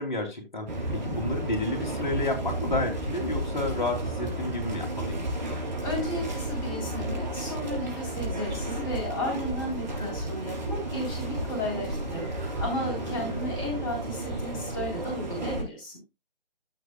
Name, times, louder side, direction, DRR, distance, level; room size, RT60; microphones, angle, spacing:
voice 1, 0.0-5.2 12.9-13.4, left 2 dB, 50° left, 3.0 m, -31 dB
sound 1, 0.7-15.6, right 1 dB, 50° right, 3.7 m, -32 dB
voice 2, 5.8-16.0, left 1 dB, 20° left, 3.8 m, -34 dB
14.5 x 6.0 x 2.3 m
figure-of-eight pair, 145°, 30 cm